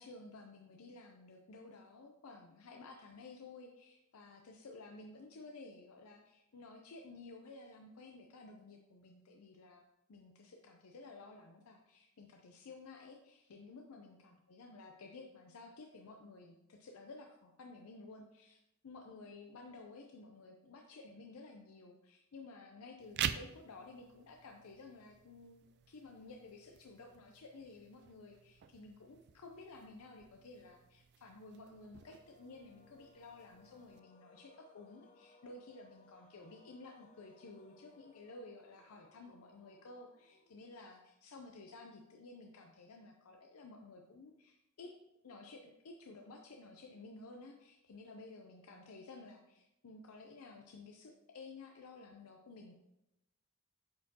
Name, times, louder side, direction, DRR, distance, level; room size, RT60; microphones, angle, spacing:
voice 1, 0.0-9.8 10.1-44.9 45.2-52.7, left 3 dB, 85° left, 3 dB, 0.5 m, -54 dB
sound 1, 23.0-34.0, right 9 dB, 50° right, 0.3 m, -47 dB
sound 2, 31.5-40.9, left 2 dB, 35° left, 0.5 m, -66 dB
8.4 x 4.3 x 2.8 m, 0.91 s
head